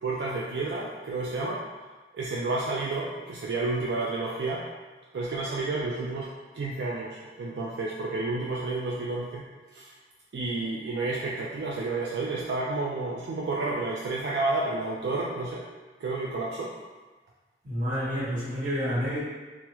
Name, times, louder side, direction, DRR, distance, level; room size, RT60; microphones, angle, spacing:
voice 1, 0.0-1.6 2.1-4.6 5.1-9.4 9.7-9.9 10.3-15.6 16.0-16.7, right 3 dB, 70° right, -4 dB, 0.3 m, -30 dB
voice 2, 17.6-19.2, equal, 45° right, -8 dB, 1.0 m, -29 dB
3.4 x 2.1 x 2.9 m, 1.3 s
head